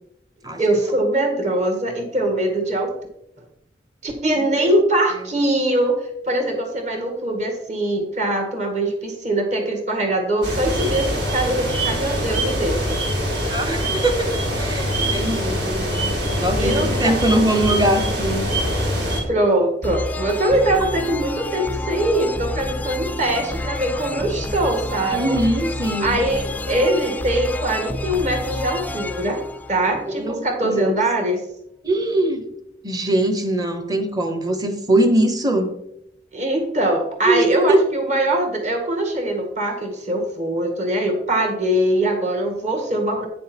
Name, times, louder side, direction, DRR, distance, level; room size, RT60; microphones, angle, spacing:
voice 1, 0.6-2.9 4.0-13.0 16.6-17.1 19.3-25.4 26.0-29.4 29.7-31.4 36.3-43.3, right 1 dB, 40° right, 3 dB, 1.8 m, -22 dB
sound 1, 10.4-19.2, equal, 70° right, 2.9 m, -23 dB
voice 2, 13.5-16.1 16.4-18.5 25.1-26.2 30.1-31.0 31.8-32.4 32.8-35.7 37.2-37.8, right 1 dB, 20° right, 8 dB, 1.0 m, -21 dB
sound 2, 19.8-30.4, left 2 dB, 10° left, 0.4 m, -29 dB
9.2 x 6.5 x 4.4 m, 0.79 s
head